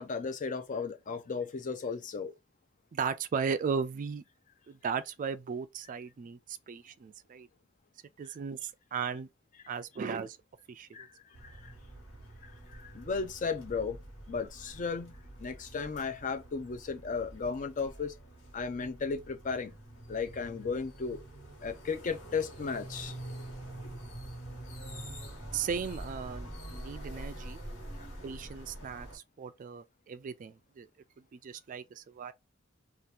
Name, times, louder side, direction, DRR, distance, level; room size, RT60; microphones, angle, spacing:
voice 1, 0.0-2.3 10.9-11.7 12.4-14.0 14.3-18.2 18.5-19.8 20.1-21.2 21.6-23.2 28.0-28.1, left 5 dB, 40° left, 0.5 m, -35 dB
voice 2, 2.9-4.2 4.7-7.5 8.2-9.3 9.7-10.4 10.7-11.1 25.5-27.6 28.2-30.9 31.3-32.3, right 6 dB, 40° right, 0.3 m, -36 dB
sound 1, 11.3-29.2, right 1 dB, 75° left, 1.5 m, -46 dB
2.8 x 2.4 x 3.3 m
head